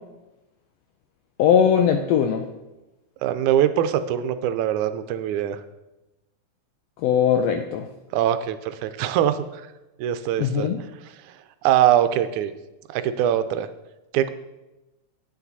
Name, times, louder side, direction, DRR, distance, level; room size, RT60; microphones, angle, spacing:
voice 1, 1.4-2.4 7.0-7.9 10.4-10.8, left 8 dB, 90° left, 6 dB, 1.4 m, -20 dB
voice 2, 3.2-5.6 8.1-9.6 10.0-10.7 11.6-12.5 12.9-13.7 14.1-14.3, right 11 dB, 80° right, 11 dB, 1.9 m, -22 dB
9.7 x 8.3 x 4.0 m, 1.0 s
omnidirectional pair, 3.5 m